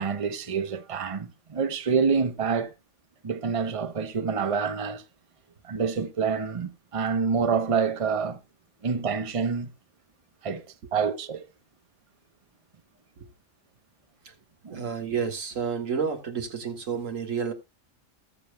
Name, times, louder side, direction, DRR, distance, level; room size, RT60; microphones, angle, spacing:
voice 1, 0.0-2.7 3.2-5.0 5.6-8.4 8.8-9.7 10.4-10.6 10.9-11.4 14.6-14.8, right 5 dB, 30° right, 0.8 m, -27 dB
voice 2, 14.7-17.5, right 6 dB, 85° right, 1.9 m, -30 dB
19.0 x 7.3 x 2.2 m
omnidirectional pair, 1.3 m